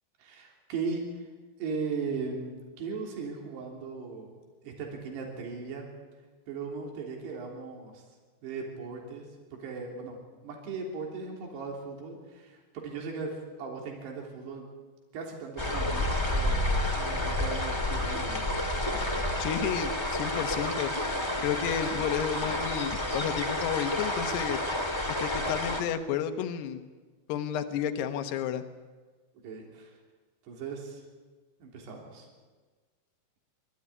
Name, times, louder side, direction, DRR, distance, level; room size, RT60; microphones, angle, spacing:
voice 1, 0.2-1.1 1.6-4.3 4.6-5.9 6.5-8.0 8.4-9.3 9.6-10.2 10.4-14.7 15.1-19.1 29.4-29.9 30.5-31.0 31.6-32.3, right 4 dB, 70° right, 0 dB, 5.3 m, -38 dB
sound 1, 15.6-25.8, left 1 dB, 15° left, 0.9 m, -30 dB
voice 2, 19.4-20.9 21.4-24.6 25.2-26.8 27.3-28.6, left 9 dB, 75° left, 8 dB, 3.2 m, -31 dB
25.5 x 13.5 x 9.9 m, 1.4 s
omnidirectional pair, 4.9 m